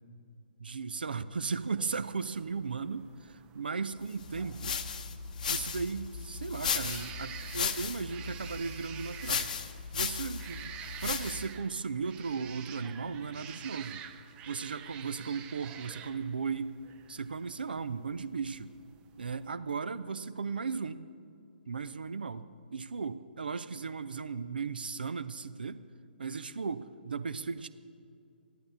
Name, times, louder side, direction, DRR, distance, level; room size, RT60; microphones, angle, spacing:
voice 1, 0.6-4.8 5.5-9.5 9.9-14.0 14.5-16.8 17.1-18.7 19.2-21.0 21.7-25.8 26.2-27.7, right 5 dB, 65° right, 13 dB, 0.5 m, -36 dB
sound 1, 1.4-19.5, right 9 dB, 15° right, 0.5 m, -49 dB
sound 2, 4.2-11.6, left 6 dB, 50° left, 0.9 m, -36 dB
13.5 x 11.5 x 6.7 m, 2.4 s
figure-of-eight pair, 130°, 6 cm